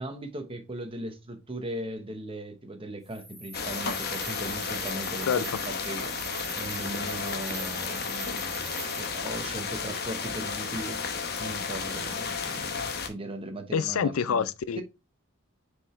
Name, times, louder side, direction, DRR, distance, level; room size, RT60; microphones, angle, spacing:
voice 1, 0.0-6.1 6.6-11.0 11.4-14.5 14.8-14.9, right 1 dB, 25° right, 1.0 m, -38 dB
sound 1, 3.0-9.4, right 3 dB, ahead, 2.0 m, -42 dB
sound 2, 3.5-13.1, left 5 dB, 50° left, 1.0 m, -33 dB
voice 2, 13.7-14.8, left 7 dB, 80° left, 0.4 m, -27 dB
6.1 x 4.9 x 3.2 m
head